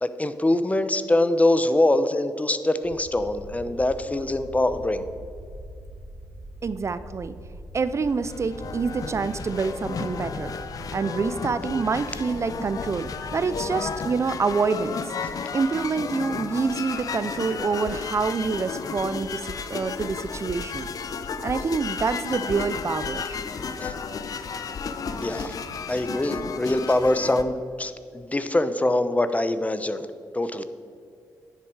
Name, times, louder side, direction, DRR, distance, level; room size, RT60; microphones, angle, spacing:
voice 1, 0.0-5.1 23.8-23.9 25.2-25.5 25.9-30.1 30.3-30.6, left 1 dB, 20° left, 11 dB, 0.8 m, -23 dB
sound 1, 2.8-14.0, equal, 5° left, 2.0 m, -42 dB
voice 2, 6.6-7.3 7.7-10.5 10.9-15.1 15.5-20.9 21.4-23.4, right 4 dB, 45° right, 13 dB, 0.5 m, -27 dB
sound 2, 8.1-27.4, left 5 dB, 60° left, 0.7 m, -33 dB
10.0 x 7.5 x 4.8 m, 2.4 s
supercardioid pair, 50°, 7 cm